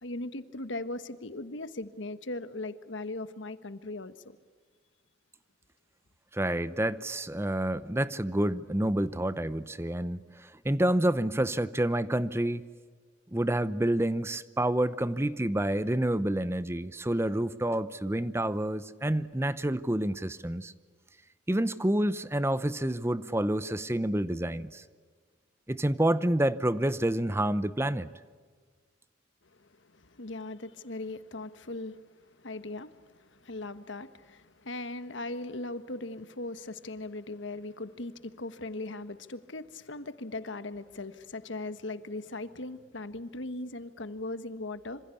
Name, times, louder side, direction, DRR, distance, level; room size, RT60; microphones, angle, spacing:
voice 1, 0.0-4.4 29.5-45.0, left 2 dB, 75° left, 1.5 m, -39 dB
voice 2, 6.3-12.6 13.3-20.7 21.5-24.8 25.7-28.1, right 1 dB, 15° right, 0.7 m, -28 dB
26.5 x 26.0 x 8.5 m
head